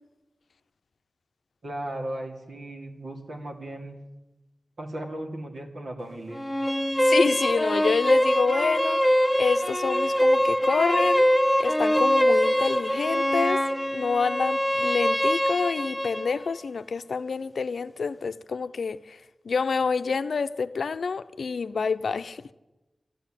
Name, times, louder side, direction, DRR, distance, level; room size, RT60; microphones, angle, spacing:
voice 1, 1.6-4.0 4.8-6.5, right 1 dB, 70° right, 2.6 m, -36 dB
sound 1, 6.3-16.3, equal, 5° left, 0.4 m, -23 dB
voice 2, 7.0-9.0 9.3-11.2 11.6-13.6 13.9-19.2 19.5-22.4, left 5 dB, 85° left, 0.6 m, -27 dB
12.5 x 11.5 x 9.0 m
wide cardioid pair, 90°, 0 cm